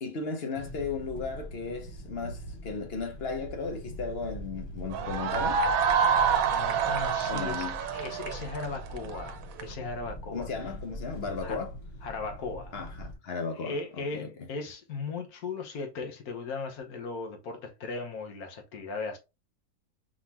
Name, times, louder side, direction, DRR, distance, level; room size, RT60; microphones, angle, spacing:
voice 1, 0.0-5.6 7.3-7.8 10.3-11.7 12.7-14.3, left 4 dB, 50° left, 0.9 m, -35 dB
sound 1, 0.6-13.1, equal, 20° left, 1.1 m, -42 dB
sound 2, 4.9-9.7, right 6 dB, 75° right, 1.1 m, -27 dB
voice 2, 6.5-7.7 7.9-10.5 11.4-11.6 12.0-12.7 13.5-19.2, left 4 dB, 80° left, 1.5 m, -37 dB
4.3 x 3.6 x 2.8 m
omnidirectional pair, 1.5 m